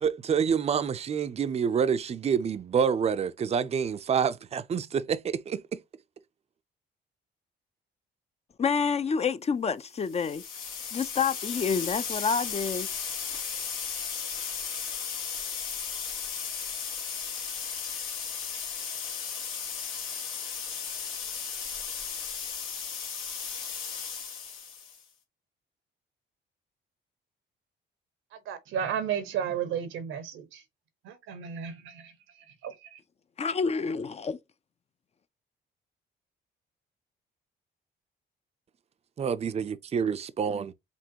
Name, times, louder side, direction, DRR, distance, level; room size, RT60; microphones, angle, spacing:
voice 1, 0.0-5.8 39.2-40.7, right 7 dB, 30° right, 0.4 m, -27 dB
voice 2, 8.6-10.4 10.9-12.9 13.3-13.4 33.4-34.4, left 5 dB, 30° left, 0.4 m, -28 dB
sound 1, 10.0-25.0, left 6 dB, 85° left, 1.4 m, -35 dB
voice 3, 28.3-30.6 31.0-33.0, right 8 dB, 90° right, 0.9 m, -34 dB
5.2 x 3.0 x 2.8 m
cardioid pair, 90°, 20 cm